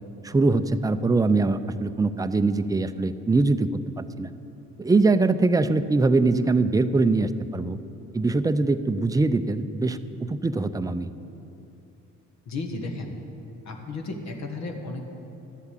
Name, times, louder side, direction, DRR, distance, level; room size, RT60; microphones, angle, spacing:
voice 1, 0.2-3.7 4.0-4.3 4.8-7.8 8.1-11.1, right 3 dB, 10° right, 11 dB, 0.5 m, -22 dB
voice 2, 12.4-13.1 13.6-15.0, left 3 dB, 65° left, 3 dB, 1.7 m, -33 dB
12.5 x 8.0 x 7.4 m, 2.8 s
cardioid pair, 90°, 30 cm